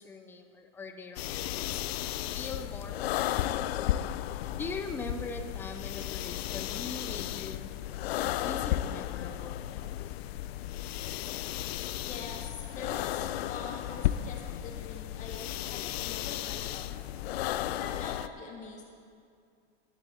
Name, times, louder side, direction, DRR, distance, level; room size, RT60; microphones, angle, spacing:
voice 1, 0.0-1.8 2.3-3.4 4.6-7.7 8.3-9.7, left 4 dB, 5° left, 5 dB, 0.3 m, -41 dB
sound 1, 1.2-18.3, left 13 dB, 75° left, 0.5 m, -34 dB
voice 2, 12.1-16.9 17.7-18.8, left 4 dB, 25° left, 0 dB, 1.7 m, -44 dB
12.5 x 12.0 x 4.2 m, 2.3 s
supercardioid pair, 155°, 31 cm